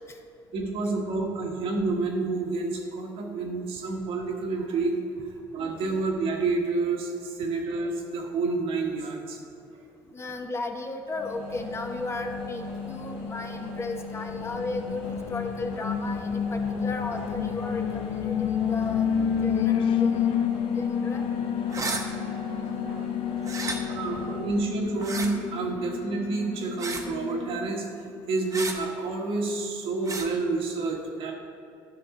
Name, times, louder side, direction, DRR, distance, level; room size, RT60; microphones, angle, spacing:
voice 1, 0.5-5.0 5.5-9.4 23.9-27.9 28.3-31.3, right 3 dB, 65° right, 1 dB, 1.5 m, -29 dB
voice 2, 10.1-19.1 19.4-20.3 20.7-21.2, left 3 dB, 25° left, 4 dB, 1.0 m, -35 dB
sound 1, 11.1-24.7, left 3 dB, 85° left, 1.9 m, -38 dB
Alarm, 14.3-27.7, left 8 dB, 55° left, 0.5 m, -30 dB
sound 2, 21.7-22.0 23.4-23.8 25.0-25.3 26.8-27.1 28.5-28.8 30.0-30.3, right 3 dB, 35° right, 1.0 m, -32 dB
11.5 x 6.0 x 3.7 m, 2.6 s
supercardioid pair, 90°, 10 cm